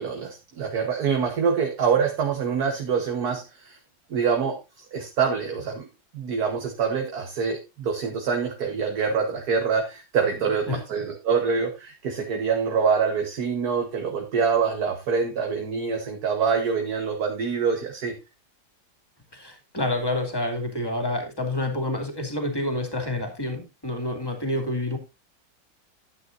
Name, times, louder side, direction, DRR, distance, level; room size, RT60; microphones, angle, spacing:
voice 1, 0.0-3.8 4.1-5.9 6.1-18.2, right 6 dB, 55° right, 4 dB, 1.8 m, -25 dB
voice 2, 10.4-10.8 19.3-25.0, left 1 dB, 10° left, 5 dB, 2.5 m, -28 dB
12.0 x 9.1 x 2.6 m, 0.25 s
omnidirectional pair, 2.1 m